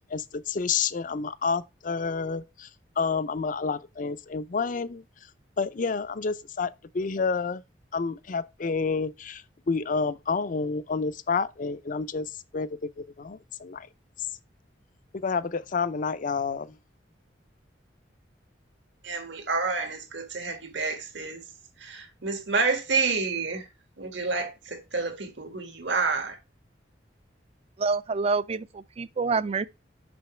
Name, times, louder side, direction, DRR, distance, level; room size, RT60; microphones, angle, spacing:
voice 1, 0.1-2.7 3.0-5.0 5.6-7.6 7.9-13.9 15.1-16.7, left 5 dB, 45° left, 0.5 m, -29 dB
voice 2, 19.0-21.4 21.8-23.6 24.0-26.4, right 4 dB, 80° right, 1.7 m, -29 dB
voice 3, 27.8-29.7, right 4 dB, 35° right, 0.4 m, -27 dB
6.2 x 5.7 x 3.1 m
head